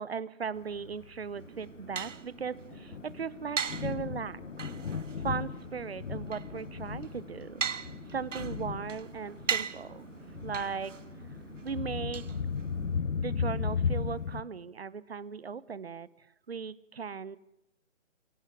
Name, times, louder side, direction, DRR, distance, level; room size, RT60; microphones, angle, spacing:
voice 1, 0.0-4.4 5.2-11.0 11.6-12.3 13.1-16.1 16.5-17.4, right 6 dB, 50° right, 19 dB, 1.1 m, -38 dB
Thunder, 0.8-14.4, left 6 dB, 75° left, 1.2 m, -36 dB
sound 1, 1.4-13.0, right 6 dB, 75° right, 1.1 m, -40 dB
25.0 x 17.5 x 10.0 m, 0.84 s
hypercardioid pair, 175°, 38 cm